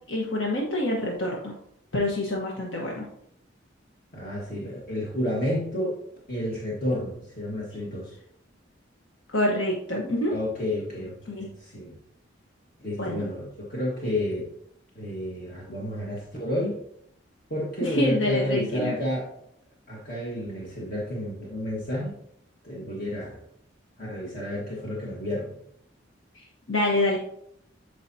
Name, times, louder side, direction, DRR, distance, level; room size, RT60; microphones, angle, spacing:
voice 1, 0.1-1.5 1.9-3.0 9.3-10.3 11.3-11.5 13.0-13.3 17.8-19.0 26.3-27.2, left 1 dB, 80° left, -2 dB, 1.3 m, -26 dB
voice 2, 4.1-6.0 6.3-8.2 10.3-11.9 12.8-14.5 14.9-16.8 17.5-19.3 19.9-22.1 22.6-23.4 24.0-25.6, left 1 dB, 50° left, -5 dB, 1.7 m, -30 dB
11.5 x 5.0 x 2.8 m, 0.73 s
head